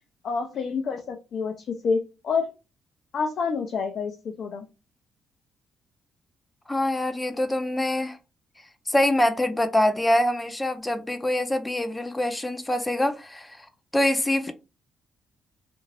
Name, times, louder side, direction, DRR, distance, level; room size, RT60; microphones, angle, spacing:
voice 1, 0.2-2.5 3.1-4.7, left 5 dB, 60° left, 0.5 m, -28 dB
voice 2, 6.7-8.2 8.9-13.7 13.9-14.5, left 1 dB, 15° left, 0.5 m, -24 dB
2.5 x 2.3 x 3.2 m
cardioid pair, 90°, 0 cm